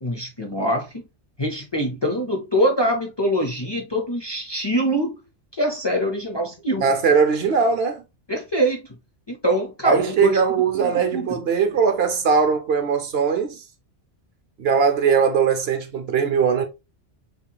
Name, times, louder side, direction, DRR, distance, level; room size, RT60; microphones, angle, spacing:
voice 1, 0.0-1.0 1.4-5.2 5.5-6.8 8.3-9.0 9.3-10.4 10.7-11.4, equal, 25° left, 0.6 m, -24 dB
voice 2, 6.8-8.0 9.8-13.6 14.6-16.6, right 6 dB, 60° right, 0.9 m, -20 dB
5.6 x 3.0 x 2.3 m
omnidirectional pair, 1.2 m